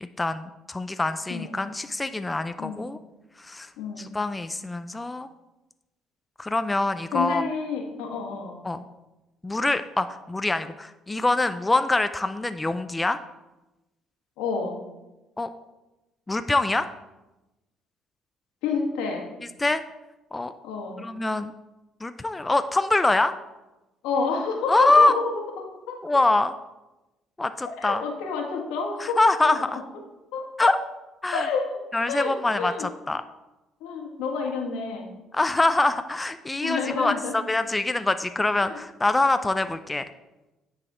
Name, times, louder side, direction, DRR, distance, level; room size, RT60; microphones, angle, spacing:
voice 1, 0.2-3.0 3.4-3.7 4.0-5.3 6.4-7.4 8.6-8.8 9.4-13.2 15.4-15.5 16.3-16.9 19.6-19.8 20.3-20.5 21.0-21.5 22.0-23.3 24.7-25.1 26.0-26.5 27.4-28.0 29.0-29.6 30.6-30.8 31.2-31.5 31.9-33.2 35.3-40.0, left 2 dB, 15° left, 10 dB, 0.4 m, -24 dB
voice 2, 3.8-4.1 7.1-8.6 14.4-14.8 18.6-19.3 20.6-21.0 24.0-26.0 27.8-29.2 29.4-29.6 30.3-30.4 31.3-31.7 32.1-32.9 33.8-35.1 36.6-37.3 38.6-38.8, left 5 dB, 85° left, 1 dB, 1.4 m, -29 dB
9.7 x 4.1 x 3.7 m, 1.0 s
supercardioid pair, 75°, 0 cm